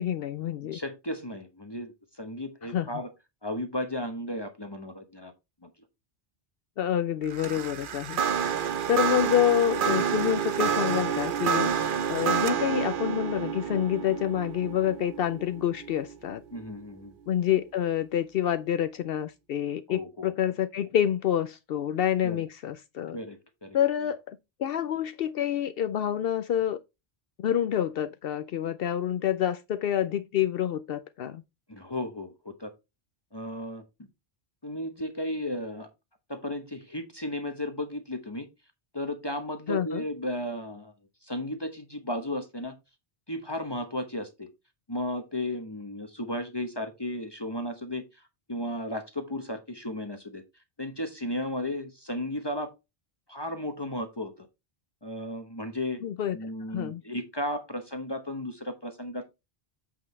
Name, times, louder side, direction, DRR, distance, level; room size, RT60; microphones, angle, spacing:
voice 1, 0.0-0.8 2.7-2.9 6.8-8.2 8.9-11.7 12.1-16.4 17.3-23.2 23.7-26.8 27.4-31.4 39.7-40.0 56.0-56.4 56.7-57.0, left 10 dB, 70° left, 0.8 m, -27 dB
voice 2, 0.7-3.1 3.4-5.3 5.6-5.7 16.5-17.1 19.9-20.3 22.2-22.4 23.1-23.8 31.7-32.7 33.3-34.1 34.6-35.9 36.3-38.5 38.9-40.9 41.2-42.7 43.3-44.5 44.9-48.0 48.5-50.4 50.8-52.7 53.3-54.5 55.0-56.0 56.3-59.3, left 1 dB, 25° left, 1.0 m, -34 dB
sound 1, 7.3-16.6, right 7 dB, 60° right, 0.9 m, -29 dB
8.2 x 5.6 x 3.2 m
omnidirectional pair, 1.0 m